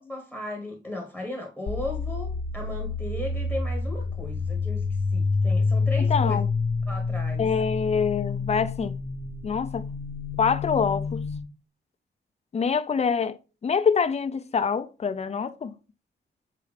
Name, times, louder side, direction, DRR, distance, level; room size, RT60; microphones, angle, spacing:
voice 1, 0.0-6.4 6.9-7.5, left 2 dB, 5° right, 1.3 m, -36 dB
sound 1, 1.7-11.4, left 4 dB, 70° left, 0.8 m, -28 dB
voice 2, 6.0-6.5 7.4-9.0 9.4-9.9 10.4-11.3 12.5-13.4 13.6-15.7, left 6 dB, 35° left, 0.5 m, -25 dB
7.1 x 4.6 x 3.3 m
wide cardioid pair, 150°, 19 cm